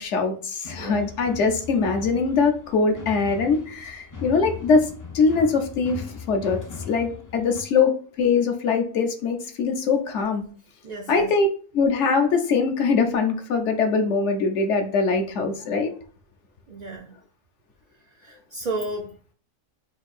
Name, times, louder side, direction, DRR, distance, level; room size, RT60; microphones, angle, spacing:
voice 1, 0.0-6.6 6.9-10.4 11.1-11.5 11.7-15.9, left 4 dB, 70° left, 1.0 m, -22 dB
sound 1, 0.6-7.6, left 5 dB, 30° left, 0.3 m, -39 dB
voice 2, 0.8-1.1 10.8-11.3 16.7-17.1 18.1-19.1, right 2 dB, 70° right, 0.4 m, -33 dB
4.4 x 2.6 x 4.1 m
omnidirectional pair, 1.3 m